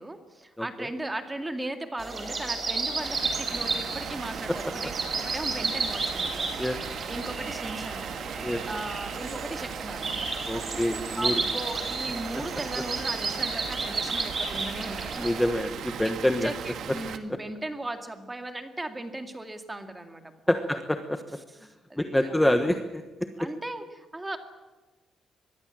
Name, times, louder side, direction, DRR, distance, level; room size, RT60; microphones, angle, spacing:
voice 1, 0.0-4.9 5.2-6.5 7.0-10.1 11.2-15.3 16.0-16.1 16.4-20.8 21.6-22.5 23.4-24.4, right 1 dB, 10° right, 7 dB, 2.2 m, -37 dB
voice 2, 0.6-0.9 6.6-6.8 8.4-8.6 10.4-11.3 15.2-16.5 20.5-21.2 22.0-23.0, left 1 dB, 5° left, 7 dB, 1.2 m, -26 dB
sound 1, 2.0-15.5, right 3 dB, 25° right, 4.3 m, -32 dB
Water, 3.0-17.2, right 8 dB, 60° right, 1.9 m, -38 dB
25.0 x 21.0 x 7.5 m, 1.2 s
cardioid pair, 175°, 0 cm